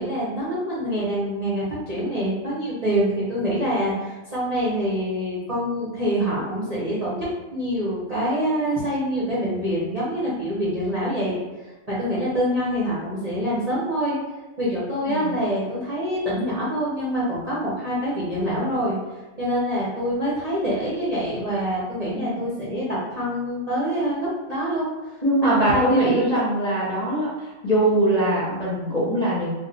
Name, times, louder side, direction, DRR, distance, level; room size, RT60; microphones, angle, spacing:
voice 1, 0.0-7.3 7.5-11.4 11.9-14.2 14.6-19.0 19.4-24.9 25.4-26.4, equal, 40° right, -8 dB, 0.5 m, -25 dB
voice 2, 25.2-29.5, right 1 dB, 40° left, -8 dB, 0.6 m, -22 dB
2.4 x 2.3 x 3.9 m, 1.2 s
omnidirectional pair, 1.6 m